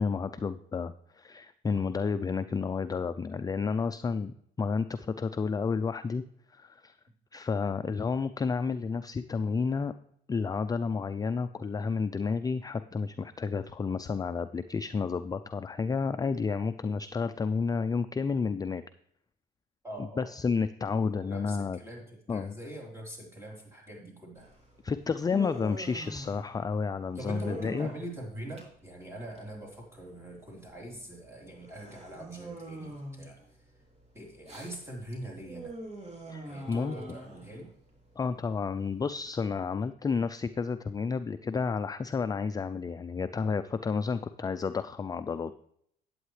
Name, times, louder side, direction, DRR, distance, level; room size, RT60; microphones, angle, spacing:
voice 1, 0.0-6.2 6.5-7.0 7.3-9.9 10.3-18.8 20.2-21.8 22.3-22.6 24.8-27.9 36.3-37.0 38.2-45.5, left 5 dB, 20° left, 11 dB, 0.4 m, -31 dB
voice 2, 19.8-20.3 21.1-24.5 27.1-33.4 34.1-35.7 36.4-37.7, right 1 dB, 15° right, -2 dB, 3.8 m, -43 dB
Human voice, 24.4-39.6, right 1 dB, 35° right, 3.1 m, -46 dB
11.0 x 8.5 x 3.2 m, 0.68 s
cardioid pair, 85°, 18 cm